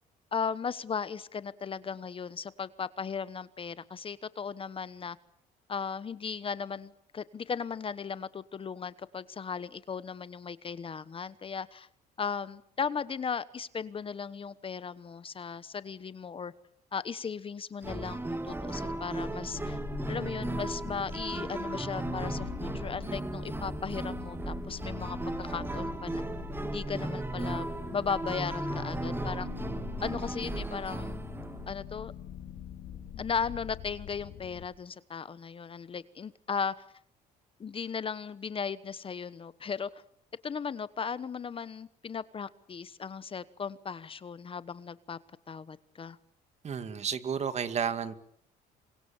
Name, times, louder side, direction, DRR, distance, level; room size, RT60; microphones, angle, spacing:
voice 1, 0.3-5.2 5.7-11.9 12.2-16.5 16.9-19.8 20.1-26.2 26.6-29.5 30.0-31.2 31.7-32.1 33.2-36.7 37.6-39.9 40.4-45.2 45.5-46.2, left 6 dB, 30° left, 16 dB, 1.1 m, -36 dB
sound 1, 17.8-31.7, right 2 dB, 15° right, 2.1 m, -36 dB
sound 2, 19.5-34.7, left 10 dB, 70° left, 4.0 m, -44 dB
voice 2, 46.6-48.1, right 7 dB, 40° right, 11 dB, 2.2 m, -32 dB
28.0 x 24.5 x 7.2 m, 0.67 s
cardioid pair, 110°, 17 cm